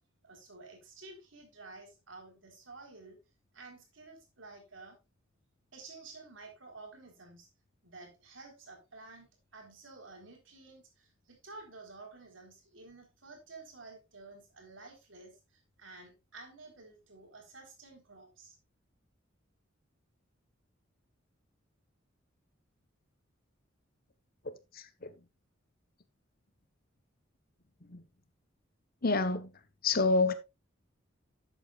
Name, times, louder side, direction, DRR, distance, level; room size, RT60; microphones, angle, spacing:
voice 1, 0.2-3.2 3.5-5.0 5.7-7.5 7.8-18.6, right 3 dB, 70° right, 4.1 m, -52 dB
voice 2, 24.4-25.1 27.8-28.0 29.0-29.5 29.8-30.3, left 3 dB, 50° left, 1.2 m, -29 dB
12.0 x 8.8 x 2.5 m
head